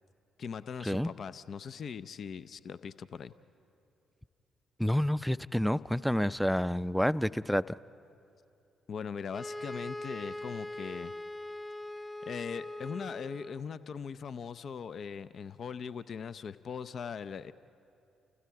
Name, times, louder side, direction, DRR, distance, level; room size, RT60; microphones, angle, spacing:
voice 1, 0.4-3.3 8.9-11.1 12.2-17.5, left 6 dB, 50° left, 15 dB, 0.5 m, -40 dB
voice 2, 4.8-7.7, equal, ahead, 17 dB, 0.5 m, -29 dB
sound 1, 9.3-13.7, left 1 dB, 25° left, 1.2 m, -41 dB
30.0 x 28.5 x 4.7 m, 2.7 s
figure-of-eight pair, 40°, 0 cm